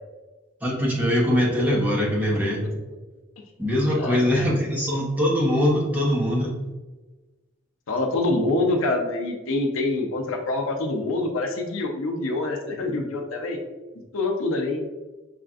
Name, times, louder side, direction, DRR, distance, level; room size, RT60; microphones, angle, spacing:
voice 1, 0.6-2.7 3.6-6.5, equal, 10° right, -5 dB, 0.8 m, -22 dB
voice 2, 2.6-3.0 3.9-4.5 7.9-13.6 14.1-14.8, left 2 dB, 80° left, 2 dB, 0.6 m, -26 dB
5.6 x 2.4 x 2.4 m, 1.2 s
head